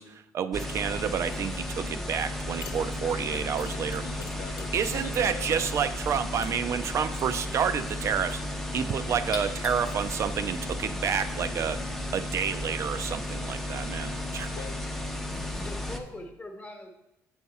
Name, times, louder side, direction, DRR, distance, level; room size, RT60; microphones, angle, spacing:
voice 1, 0.0-4.0 4.7-11.8 12.1-14.5, right 7 dB, 50° right, 11 dB, 0.3 m, -29 dB
sound 1, 0.5-16.0, left 1 dB, 5° left, 0.6 m, -34 dB
sound 2, 2.2-2.4 2.6-11.5, left 5 dB, 70° left, 0.9 m, -46 dB
voice 2, 2.9-5.7 14.5-14.9, left 8 dB, 85° left, 7 dB, 0.5 m, -45 dB
voice 3, 15.3-16.9, left 2 dB, 20° left, 3 dB, 1.0 m, -42 dB
7.9 x 4.8 x 4.0 m, 0.90 s
cardioid pair, 120°, 6 cm